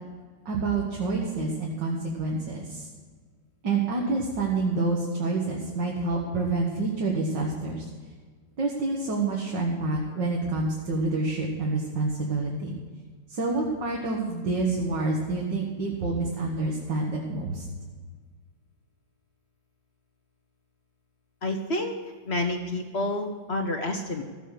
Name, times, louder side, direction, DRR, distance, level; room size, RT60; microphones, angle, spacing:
voice 1, 0.5-2.9 3.6-7.8 8.6-12.8 13.3-17.6, right 3 dB, 70° right, -2 dB, 2.2 m, -28 dB
voice 2, 21.4-21.9 22.3-24.2, left 2 dB, 45° left, 4 dB, 1.0 m, -29 dB
14.5 x 7.7 x 6.7 m, 1.5 s
omnidirectional pair, 2.0 m